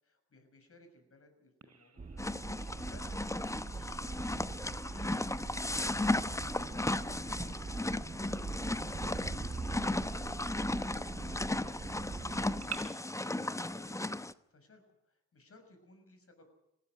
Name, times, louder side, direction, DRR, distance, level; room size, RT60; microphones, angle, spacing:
voice 1, 0.0-2.3 2.6-5.2 11.2-16.5, left 2 dB, 50° left, 7 dB, 6.4 m, -63 dB
Bird vocalization bird call bird song, 1.6-12.8, right 7 dB, 55° right, 3.9 m, -54 dB
sound 1, 2.0-12.9, right 4 dB, 30° right, 1.2 m, -43 dB
sound 2, 2.2-14.3, left 2 dB, 10° left, 0.9 m, -35 dB
19.5 x 15.5 x 9.6 m, 0.83 s
hypercardioid pair, 45°, 30 cm